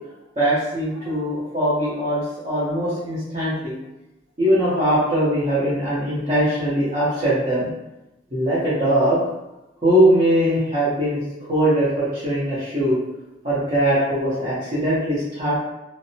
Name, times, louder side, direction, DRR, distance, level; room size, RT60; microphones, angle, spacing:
voice 1, 0.4-3.7 4.4-7.7 8.3-9.2 9.8-11.2 11.5-13.0 13.4-15.6, right 1 dB, 35° right, -11 dB, 0.8 m, -21 dB
2.6 x 2.0 x 2.7 m, 0.92 s
head